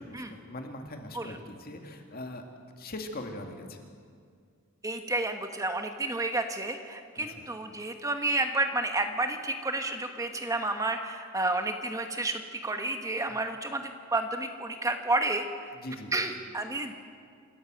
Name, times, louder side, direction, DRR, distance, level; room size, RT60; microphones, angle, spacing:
voice 1, 0.1-2.4 2.8-3.8 7.2-7.4 15.7-16.1, left 1 dB, 50° left, 4 dB, 2.3 m, -41 dB
voice 2, 4.8-15.5 16.1-17.0, right 2 dB, 15° right, 6 dB, 1.2 m, -31 dB
27.0 x 14.0 x 7.7 m, 2.2 s
head